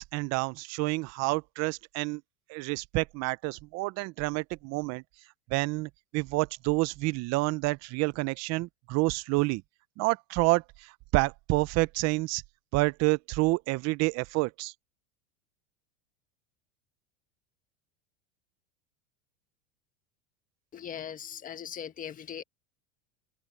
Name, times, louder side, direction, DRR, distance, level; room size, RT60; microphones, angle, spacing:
voice 1, 0.0-2.2 2.5-5.0 5.5-9.6 10.0-12.4 12.7-14.7, right 24 dB, 45° right, 0.7 m, -28 dB
voice 2, 20.7-22.4, left 8 dB, 25° left, 1.4 m, -39 dB
supercardioid pair, 130°, 36 cm